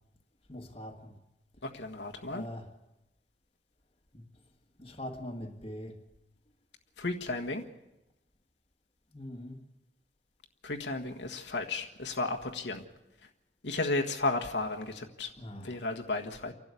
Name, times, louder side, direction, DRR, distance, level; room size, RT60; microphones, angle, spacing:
voice 1, 0.5-1.1 2.3-2.6 4.1-4.2 4.8-5.9 9.1-9.5 15.4-15.7, left 1 dB, 30° left, 2 dB, 1.6 m, -42 dB
voice 2, 1.6-2.4 7.0-7.6 10.6-12.8 13.6-15.3 15.6-16.5, left 2 dB, 80° left, 2 dB, 1.6 m, -33 dB
29.0 x 12.0 x 8.3 m, 0.96 s
head